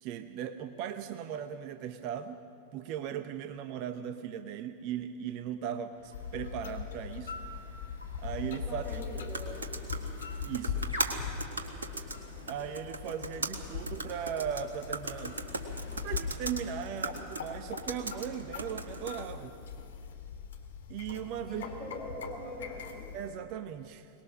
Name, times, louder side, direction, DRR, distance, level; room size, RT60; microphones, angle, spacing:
voice 1, 0.0-2.4 2.7-7.3 8.2-9.0 10.5-10.8 12.5-15.4 15.9-19.5 20.9-21.6 23.1-24.1, right 9 dB, 45° right, 9 dB, 0.8 m, -38 dB
sound 1, 5.9-19.3, left 1 dB, 90° left, 3.5 m, -50 dB
sound 2, 6.1-23.3, left 6 dB, 65° left, 2.1 m, -41 dB
voice 2, 8.6-9.6 21.4-23.1, left 1 dB, 15° left, -4 dB, 5.2 m, -42 dB
sound 3, 8.8-19.3, right 3 dB, 75° right, 1.7 m, -40 dB
23.5 x 20.0 x 6.3 m, 2.5 s
figure-of-eight pair, 90°, 0 cm